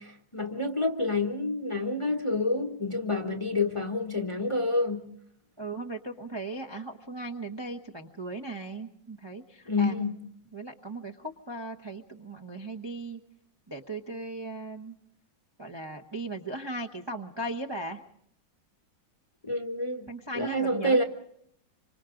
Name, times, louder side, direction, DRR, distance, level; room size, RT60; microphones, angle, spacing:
voice 1, 0.0-5.1 9.7-10.2 19.4-21.0, left 2 dB, 20° left, 1.0 m, -28 dB
voice 2, 5.6-9.9 10.5-13.2 13.7-14.9 15.6-18.0 20.1-21.0, right 2 dB, 20° right, 0.8 m, -37 dB
27.0 x 25.5 x 3.8 m
omnidirectional pair, 2.0 m